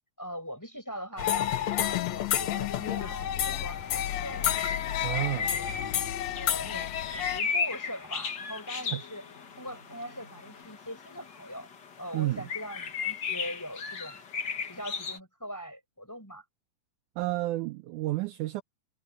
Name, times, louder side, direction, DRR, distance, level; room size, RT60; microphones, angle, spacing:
voice 1, 0.2-4.7 5.1-5.8 6.4-9.2 9.6-11.7 12.0-14.2 14.6-16.4, equal, 5° left, 5.3 m, -42 dB
sound 1, 1.2-7.4, left 11 dB, 65° left, 1.9 m, -30 dB
sound 2, 3.7-15.2, left 5 dB, 45° left, 1.5 m, -36 dB
voice 2, 5.0-5.5 8.9-9.0 12.1-12.5 17.2-18.6, right 17 dB, 80° right, 1.9 m, -30 dB
sound 3, 8.1-10.6, left 3 dB, 20° left, 5.4 m, -62 dB
omnidirectional pair, 4.0 m